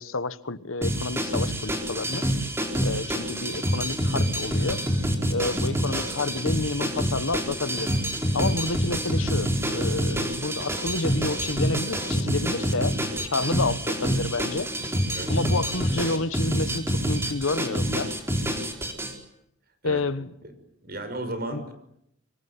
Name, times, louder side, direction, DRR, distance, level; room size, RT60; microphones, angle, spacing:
voice 1, 0.0-2.3 2.8-4.8 5.3-7.9 8.3-12.9 13.3-14.7 15.3-18.1 19.8-20.3 21.5-21.6, left 3 dB, 80° left, 1.3 m, -29 dB
sound 1, 0.8-19.1, equal, 10° right, 4.8 m, -27 dB
voice 2, 20.8-21.7, right 1 dB, 45° right, 5.8 m, -34 dB
25.5 x 24.0 x 9.7 m
head